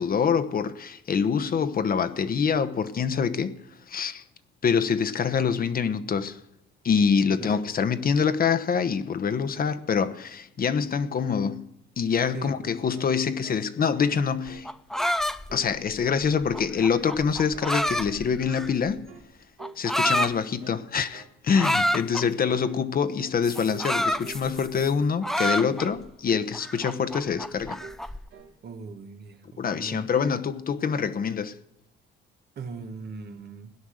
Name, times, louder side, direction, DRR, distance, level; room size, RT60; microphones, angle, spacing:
voice 1, 0.0-3.6 3.9-4.2 4.6-6.4 6.8-11.7 12.0-14.7 15.5-19.1 19.8-27.8 29.6-31.5, left 6 dB, 45° left, 1.0 m, -25 dB
voice 2, 12.3-12.7 28.6-30.1 32.5-33.7, right 4 dB, 55° right, 1.6 m, -40 dB
sound 1, 12.4-13.7 14.0-14.2 14.5-15.2 15.5-16.2 16.5-17.3 17.5-17.8 18.0-18.8 19.1-19.3 19.6-19.8 20.1-20.8 21.1-21.4 21.6-21.9 22.1-22.4 22.7-22.9 23.2-23.4 23.7-23.9 24.2-24.4 24.7-24.9 25.2-25.5 25.7-26.0 26.3-27.0 27.3-27.5 27.8-28.0 28.3-28.6, right 5 dB, 80° right, 2.2 m, -47 dB
sound 2, 14.5-18.9 19.6-20.3 21.6-22.3 23.4-24.9 25.2-26.1 26.5-28.2, equal, ahead, 0.5 m, -28 dB
17.5 x 10.0 x 6.5 m
cardioid pair, 90°, 21 cm